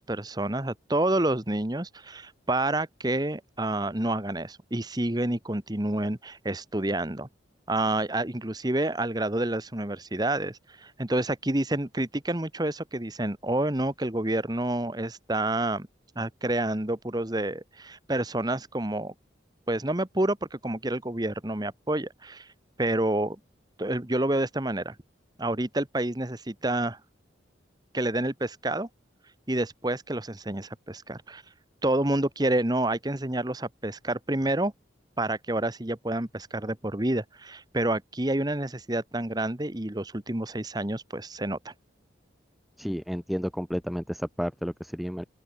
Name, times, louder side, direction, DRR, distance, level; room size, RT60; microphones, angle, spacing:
voice 1, 0.0-7.3 7.7-15.9 16.2-19.1 19.7-22.5 22.8-23.4 23.8-24.9 25.4-27.0 27.9-28.9 29.5-31.4 31.8-34.7 35.2-41.7, right 1 dB, 20° right, 1.2 m, -28 dB
voice 2, 42.8-45.3, equal, ahead, 3.7 m, -31 dB
open air
head